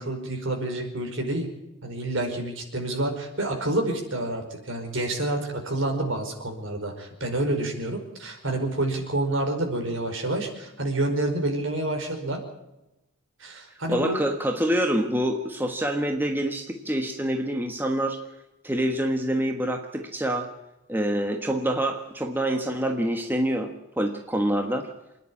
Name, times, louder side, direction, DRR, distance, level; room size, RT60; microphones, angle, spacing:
voice 1, 0.0-1.5 1.8-12.4 13.4-14.2, right 1 dB, 60° right, 3 dB, 5.1 m, -28 dB
voice 2, 13.9-18.2 18.6-20.5 20.9-24.9, right 1 dB, 10° right, 4 dB, 1.3 m, -26 dB
27.0 x 10.0 x 9.9 m, 0.95 s
head